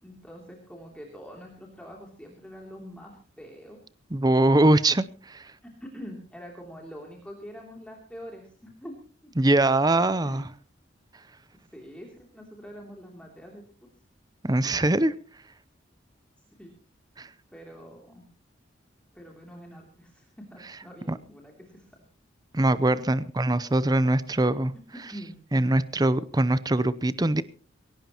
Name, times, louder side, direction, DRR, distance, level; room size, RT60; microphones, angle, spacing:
voice 1, 0.0-3.8 5.8-8.9 9.2-9.3 10.2-10.5 11.7-13.6 16.6-16.7 17.5-18.3 19.1-22.0 23.0-23.1 25.1-25.4, equal, 5° left, -1 dB, 2.9 m, -44 dB
voice 2, 4.1-5.5 9.4-10.5 14.4-15.1 17.2-17.3 21.1-21.2 22.5-24.7 25.5-27.4, right 2 dB, 20° right, 16 dB, 0.6 m, -22 dB
21.0 x 17.5 x 3.0 m, 0.38 s
head